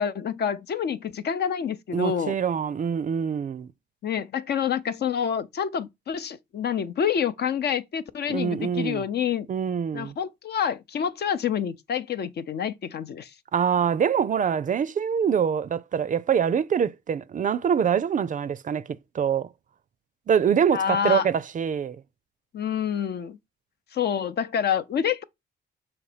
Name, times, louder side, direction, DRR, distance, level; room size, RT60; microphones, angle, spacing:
voice 1, 0.0-2.4 4.0-9.5 9.9-13.3 20.7-21.3 22.5-23.4 23.9-25.2, left 8 dB, 55° left, 0.7 m, -27 dB
voice 2, 1.9-3.7 8.3-9.0 9.5-10.1 13.5-19.5 20.3-22.0, right 7 dB, 40° right, 0.5 m, -25 dB
6.4 x 3.0 x 5.0 m
cardioid pair, 90°, 20 cm